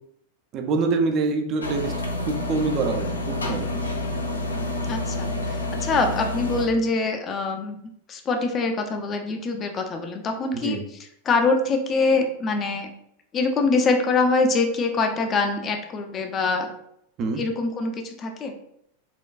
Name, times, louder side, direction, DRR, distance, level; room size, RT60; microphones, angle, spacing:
voice 1, 0.5-1.9 2.3-3.7 10.5-10.8 17.2-17.4, right 3 dB, 35° right, 4 dB, 0.4 m, -25 dB
sound 1, 1.6-6.7, left 1 dB, 75° left, 0.5 m, -28 dB
voice 2, 4.9-7.8 8.1-10.8 11.3-12.9 13.3-16.7 17.4-18.5, left 3 dB, 25° left, 4 dB, 0.4 m, -24 dB
4.2 x 2.3 x 2.4 m, 0.73 s
figure-of-eight pair, 90°, 0 cm